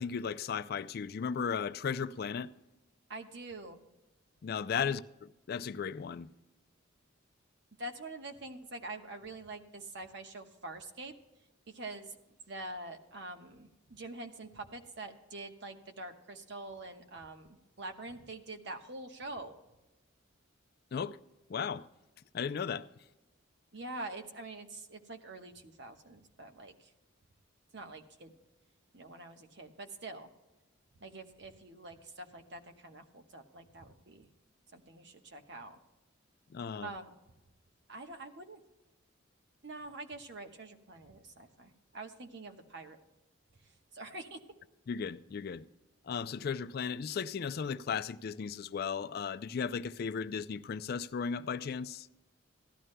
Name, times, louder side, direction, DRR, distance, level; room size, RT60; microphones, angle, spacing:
voice 1, 0.0-2.5 4.4-6.3 20.9-21.2 21.5-21.9 22.3-22.9 36.5-36.9 44.9-45.6 46.0-52.1, left 6 dB, 50° left, 0.3 m, -36 dB
voice 2, 3.1-3.8 4.8-4.9 7.8-11.1 11.7-12.2 12.5-19.6 23.7-26.7 27.7-28.3 28.9-30.3 31.0-34.3 34.7-35.8 36.8-37.1 37.9-38.6 39.6-43.0 43.9-44.4, right 2 dB, 60° right, 1.1 m, -45 dB
17.0 x 12.5 x 2.2 m
head